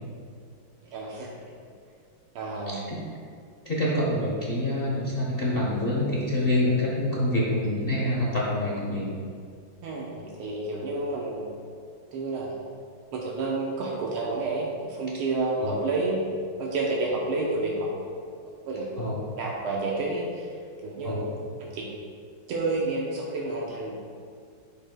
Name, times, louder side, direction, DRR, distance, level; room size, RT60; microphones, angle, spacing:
voice 1, 0.8-1.3 2.3-2.8 9.8-11.5 12.1-12.5 13.1-16.2 16.6-17.9 18.4-18.9 19.3-20.6 20.8-21.3 21.6-21.9 22.5-24.0, right 3 dB, 80° right, -3 dB, 1.7 m, -30 dB
voice 2, 3.6-9.1 15.6-15.7 19.0-19.2 21.0-21.3, left 1 dB, 45° left, -5 dB, 0.7 m, -26 dB
11.0 x 5.5 x 2.2 m, 2.2 s
omnidirectional pair, 2.4 m